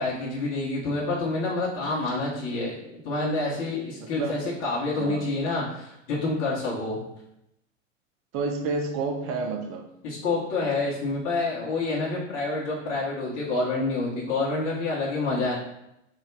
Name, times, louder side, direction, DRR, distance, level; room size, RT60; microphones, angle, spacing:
voice 1, 0.0-7.0 10.0-15.6, left 3 dB, 40° left, -7 dB, 1.3 m, -28 dB
voice 2, 8.3-9.9, right 4 dB, 35° right, 4 dB, 0.6 m, -29 dB
3.5 x 2.7 x 4.7 m, 0.83 s
figure-of-eight pair, 90°, 38 cm